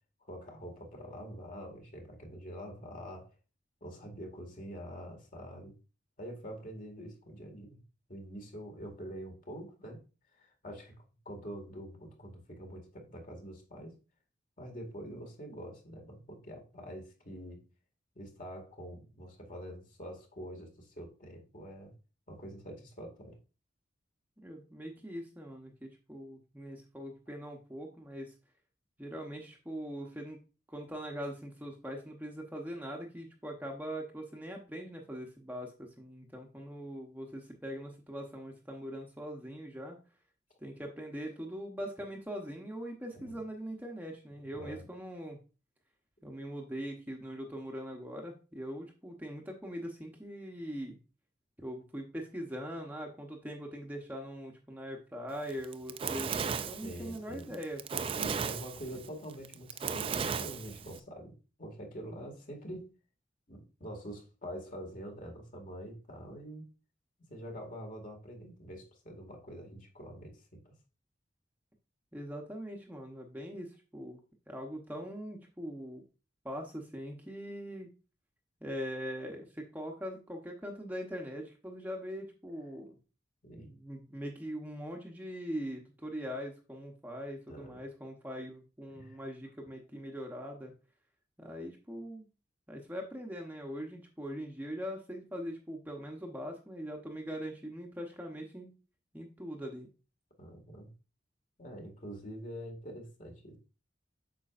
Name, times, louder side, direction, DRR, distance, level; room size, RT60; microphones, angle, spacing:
voice 1, 0.2-3.3 3.8-5.7 6.2-7.8 8.1-10.0 10.3-11.0 11.3-14.0 14.6-17.7 18.2-21.9 22.3-23.4 43.1-43.3 44.6-44.9 56.8-57.6 58.1-61.3 61.6-62.9 63.5-66.6 67.3-70.6 83.4-83.7 87.5-87.8 88.9-89.2 100.4-100.9 101.6-103.6, equal, 45° left, 3 dB, 2.0 m, -45 dB
voice 2, 24.4-28.3 29.0-30.4 30.7-40.0 40.6-45.4 46.2-51.0 51.6-58.2 72.1-74.2 74.5-76.0 76.4-77.9 78.6-83.0 83.6-90.7 91.4-92.3 92.7-98.7 99.1-99.9, equal, 10° right, 1 dB, 0.9 m, -42 dB
Fire, 55.5-61.0, right 6 dB, 30° right, 0.3 m, -35 dB
8.3 x 6.0 x 2.5 m, 0.33 s
head